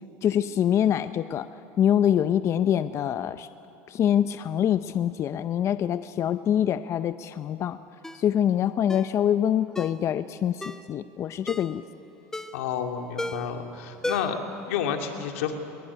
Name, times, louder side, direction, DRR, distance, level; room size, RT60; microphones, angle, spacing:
voice 1, 0.2-1.5 1.8-3.5 3.9-7.8 8.1-11.8, left 10 dB, 40° left, 13 dB, 0.6 m, -25 dB
Ringtone, 8.0-8.3 8.9-9.1 9.8-10.0 10.6-10.9 11.5-11.8 12.3-12.7 13.2-13.6 14.0-14.5 14.8-14.9, left 1 dB, 5° left, 1.0 m, -35 dB
voice 2, 12.5-15.5, left 8 dB, 90° left, 5 dB, 2.4 m, -30 dB
21.5 x 21.5 x 9.8 m, 2.8 s
supercardioid pair, 115°, 7 cm